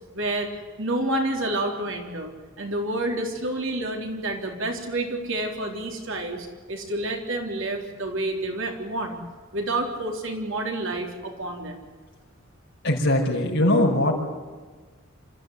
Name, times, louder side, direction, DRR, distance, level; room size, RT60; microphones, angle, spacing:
voice 1, 0.1-0.5 0.8-9.2 9.5-11.9, right 1 dB, 65° right, 3 dB, 3.9 m, -29 dB
voice 2, 12.8-14.1, left 1 dB, 60° left, -2 dB, 5.3 m, -21 dB
27.5 x 14.5 x 9.6 m, 1.4 s
head